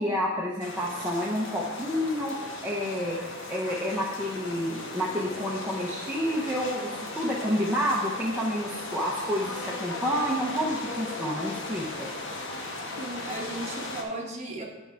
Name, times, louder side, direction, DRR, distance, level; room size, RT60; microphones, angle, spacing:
voice 1, 0.0-3.2 3.5-12.1, equal, 10° right, -4 dB, 0.7 m, -29 dB
sound 1, 0.6-14.0, left 2 dB, 60° left, 1.1 m, -37 dB
voice 2, 13.0-14.6, right 2 dB, 30° right, -1 dB, 1.2 m, -36 dB
9.6 x 4.6 x 4.5 m, 1.2 s
head